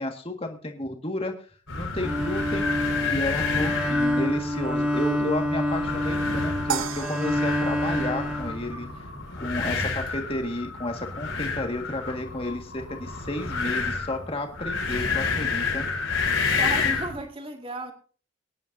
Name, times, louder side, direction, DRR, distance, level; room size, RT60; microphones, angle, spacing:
voice 1, 0.0-1.3 1.7-2.7 3.0-8.9 9.4-15.9, left 1 dB, 30° left, 4 dB, 1.8 m, -32 dB
sound 1, 1.7-17.2, left 4 dB, 75° left, 4.8 m, -30 dB
Bowed string instrument, 2.0-9.2, left 1 dB, 5° right, 1.9 m, -27 dB
sound 2, 6.7-9.1, right 7 dB, 80° right, 0.9 m, -35 dB
voice 2, 16.5-17.9, right 2 dB, 25° right, 4 dB, 2.1 m, -33 dB
23.0 x 10.5 x 2.7 m, 0.39 s
head